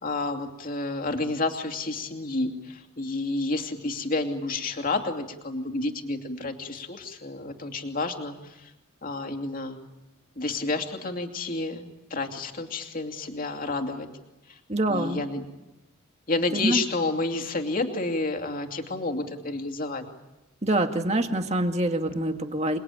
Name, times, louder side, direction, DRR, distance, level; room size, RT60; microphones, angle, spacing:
voice 1, 0.0-8.7 9.0-9.8 10.4-14.1 14.5-14.6 14.9-15.4 16.3-20.0, left 2 dB, 40° left, 4 dB, 2.6 m, -30 dB
voice 2, 14.7-15.2 16.5-16.8 20.6-22.8, right 1 dB, 30° right, 5 dB, 2.1 m, -25 dB
28.0 x 21.0 x 9.1 m, 1.0 s
head